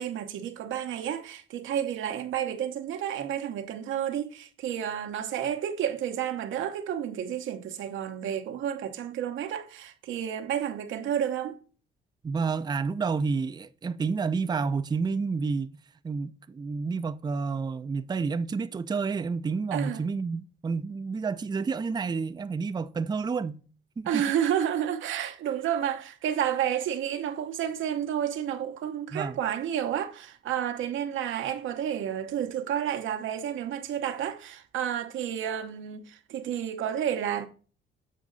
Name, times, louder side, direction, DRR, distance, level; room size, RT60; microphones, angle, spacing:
voice 1, 0.0-11.6 19.7-20.1 24.0-37.5, right 9 dB, 80° right, 0.9 m, -31 dB
voice 2, 12.2-15.7 16.0-23.6 24.0-24.2 29.1-29.4, right 4 dB, 20° right, 0.4 m, -30 dB
7.5 x 5.2 x 3.8 m
cardioid pair, 90°, 20 cm